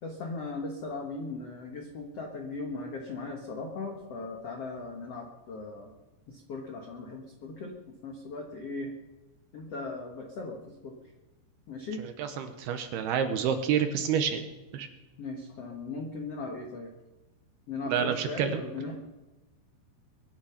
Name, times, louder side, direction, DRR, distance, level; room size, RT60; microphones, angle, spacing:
voice 1, 0.0-5.9 6.3-8.9 9.5-10.9 11.7-12.0 15.2-16.9 17.7-19.0, left 3 dB, 90° left, 2 dB, 1.3 m, -38 dB
voice 2, 12.2-14.4 14.7-14.9 17.9-18.6, right 8 dB, 75° right, 7 dB, 2.6 m, -28 dB
23.0 x 10.5 x 5.8 m, 1.1 s
omnidirectional pair, 5.3 m